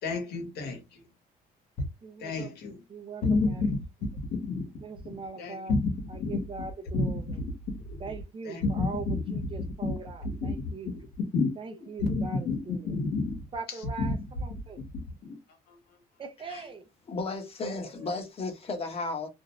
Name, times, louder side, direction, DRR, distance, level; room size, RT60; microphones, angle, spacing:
voice 1, 0.0-1.0 2.2-2.8 3.2-3.4 4.5-4.6 5.4-5.8 6.2-6.3 6.9-7.0 7.9-8.0 8.4-9.2 11.3-11.5 11.8-12.6 12.8-13.4 15.7-16.0, left 3 dB, 75° left, 1.0 m, -29 dB
voice 2, 2.0-2.5 2.9-3.7 4.8-5.8 6.1-7.4 8.0-11.0 11.6-13.0 13.5-14.9 16.2-16.9 17.8-18.1, right 4 dB, 30° right, 0.5 m, -41 dB
voice 3, 17.1-19.3, left 3 dB, 35° left, 0.9 m, -34 dB
2.6 x 2.1 x 2.9 m
cardioid pair, 110°, 17 cm